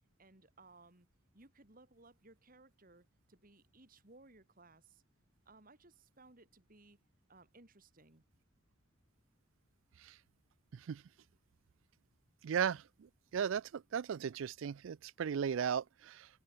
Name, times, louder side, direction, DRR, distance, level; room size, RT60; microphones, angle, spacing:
voice 1, 0.2-1.1 1.3-5.0 5.5-7.0 7.3-8.2, right 2 dB, 45° right, 2.8 m, -61 dB
voice 2, 12.4-12.8 13.3-16.3, right 7 dB, 70° right, 0.4 m, -36 dB
head